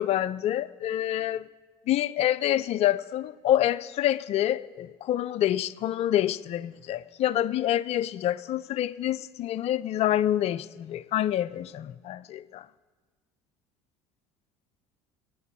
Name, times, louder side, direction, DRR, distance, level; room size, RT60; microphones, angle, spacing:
voice 1, 0.0-1.5 1.9-12.7, left 12 dB, 55° left, 0.6 m, -27 dB
16.0 x 10.0 x 8.4 m
hypercardioid pair, 75°, 13 cm